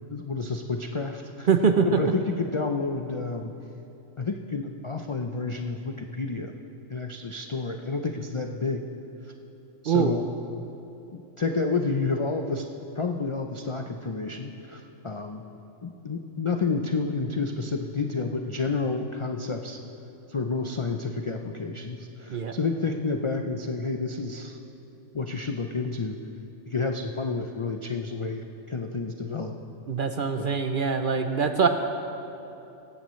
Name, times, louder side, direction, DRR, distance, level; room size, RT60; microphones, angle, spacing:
voice 1, 0.1-1.5 1.9-3.5 4.2-6.5 6.9-8.8 9.8-10.2 11.1-12.7 13.0-15.4 15.8-19.8 20.3-24.6 25.1-26.2 26.7-29.6, left 4 dB, 55° left, 4 dB, 0.3 m, -30 dB
voice 2, 1.5-2.0 9.9-10.1 22.3-22.6 29.9-31.7, right 6 dB, 55° right, 6 dB, 0.6 m, -23 dB
18.5 x 15.0 x 3.2 m, 2.9 s
omnidirectional pair, 1.4 m